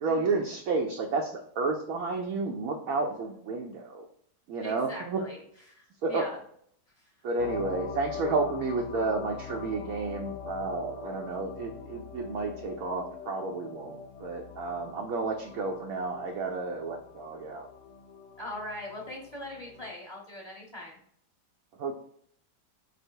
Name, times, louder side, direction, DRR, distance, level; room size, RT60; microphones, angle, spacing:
voice 1, 0.0-4.1 4.5-5.2 6.0-6.3 7.2-17.7 21.8-21.9, right 3 dB, 70° right, 2 dB, 0.9 m, -31 dB
voice 2, 4.6-5.4 5.7-6.4 7.0-7.1 18.4-20.9, left 1 dB, 25° left, -4 dB, 1.0 m, -41 dB
sound 1, 7.4-19.9, left 6 dB, 75° left, 1.1 m, -43 dB
5.1 x 2.0 x 4.4 m, 0.64 s
omnidirectional pair, 1.7 m